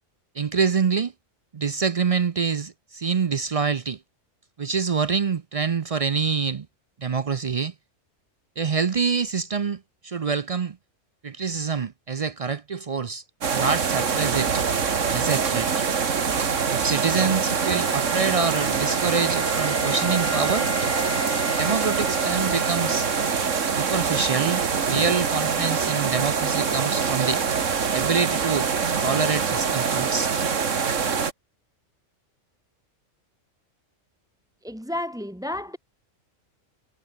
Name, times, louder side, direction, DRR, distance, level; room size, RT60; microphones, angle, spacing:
voice 1, 0.4-1.1 1.5-4.0 4.6-6.7 7.0-7.7 8.6-10.8 11.2-13.2 13.5-14.6 15.1-15.8 16.7-20.7 21.5-23.1 23.7-27.4 27.9-28.7 29.0-30.3, right 5 dB, 50° right, 0.4 m, -26 dB
sound 1, 13.4-31.3, right 6 dB, 75° right, 1.9 m, -24 dB
Wind instrument woodwind instrument, 16.3-24.0, left 4 dB, 35° left, 1.7 m, -37 dB
voice 2, 34.6-35.8, left 1 dB, 5° right, 1.7 m, -31 dB
omnidirectional pair, 1.3 m